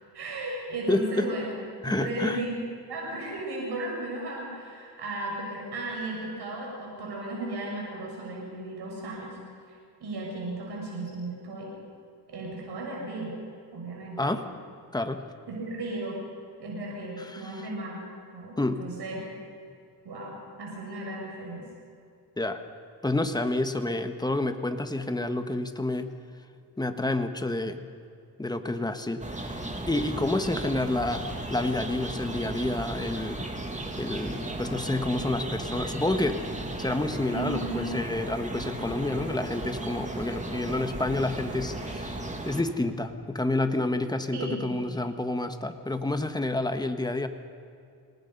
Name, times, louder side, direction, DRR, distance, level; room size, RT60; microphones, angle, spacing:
voice 1, 0.1-1.5 1.9-9.3 9.7-11.7 12.3-13.4 13.7-14.4 15.5-16.2 16.6-18.0 18.3-19.2 20.0-21.7 37.3-37.9 44.3-44.8, right 2 dB, 75° right, -2 dB, 6.2 m, -35 dB
voice 2, 0.9-1.3 1.8-2.4 14.2-14.5 14.9-15.2 17.2-17.4 18.6-18.8 22.4-22.6 23.0-26.1 26.8-27.8 28.4-29.6 29.9-33.4 34.0-36.4 36.8-42.2 42.4-47.3, left 2 dB, 10° left, 7 dB, 1.5 m, -29 dB
sound 1, 29.2-42.6, right 1 dB, 15° right, 2.4 m, -35 dB
27.0 x 19.0 x 5.5 m, 2.5 s
cardioid pair, 95°, 40 cm